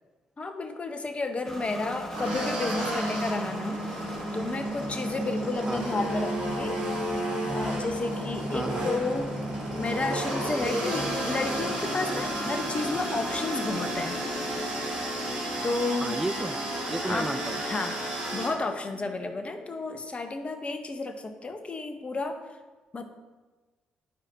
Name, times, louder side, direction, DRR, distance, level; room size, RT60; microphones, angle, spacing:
voice 1, 0.4-3.8 4.3-6.8 7.5-9.3 9.7-14.2 15.6-16.2 17.1-17.3 17.6-18.0 18.3-22.4 22.9-23.0, left 3 dB, 35° left, 7 dB, 1.0 m, -32 dB
sound 1, 1.4-19.9, equal, 10° left, 1.9 m, -37 dB
sound 2, 2.1-18.5, right 1 dB, 85° right, 2.4 m, -33 dB
voice 2, 8.5-8.9 16.0-17.6, right 2 dB, 15° right, 9 dB, 0.4 m, -33 dB
11.0 x 4.9 x 2.8 m, 1.3 s
hypercardioid pair, 50°, 4 cm